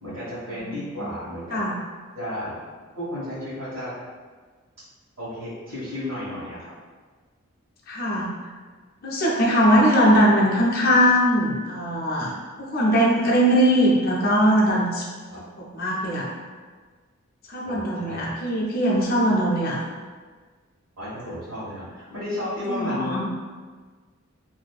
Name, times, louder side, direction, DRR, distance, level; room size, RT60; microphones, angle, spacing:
voice 1, 0.0-1.6 2.1-2.6 2.9-3.9 5.2-6.7 9.6-9.8 15.3-15.4 17.6-18.4 21.0-23.2, left 1 dB, 70° right, -14 dB, 1.2 m, -33 dB
voice 2, 0.6-1.1 1.5-1.7 7.9-8.3 9.0-12.3 12.6-15.0 15.6-16.3 17.5-19.8 22.7-23.2, equal, 45° left, -4 dB, 0.5 m, -20 dB
2.6 x 2.5 x 2.3 m, 1.5 s
head